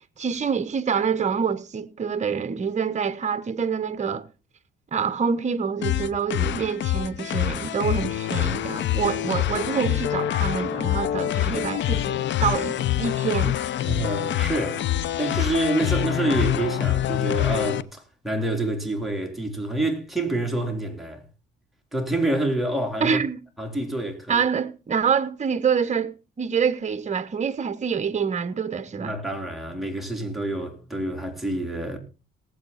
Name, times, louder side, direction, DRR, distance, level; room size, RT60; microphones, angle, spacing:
voice 1, 0.2-4.2 4.9-13.6 23.0-23.4 24.3-29.1, right 6 dB, 35° right, 1.1 m, -26 dB
sound 1, 5.8-17.8, left 12 dB, 65° left, 0.7 m, -25 dB
voice 2, 13.9-21.2 21.9-23.2 23.6-24.4 29.0-32.0, right 2 dB, ahead, 3.8 m, -27 dB
18.5 x 7.9 x 4.2 m
cardioid pair, 90°, 20 cm